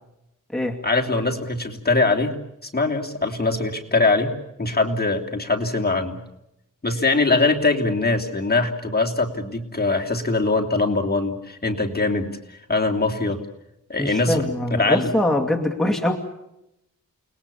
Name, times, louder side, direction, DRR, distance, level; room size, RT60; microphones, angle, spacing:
voice 1, 0.8-4.3 4.6-6.2 6.8-13.4 13.9-15.1, left 3 dB, 30° left, 1 dB, 3.0 m, -22 dB
voice 2, 14.0-16.2, left 1 dB, ahead, 1 dB, 2.3 m, -23 dB
29.5 x 20.5 x 7.0 m, 0.84 s
wide cardioid pair, 105°, 32 cm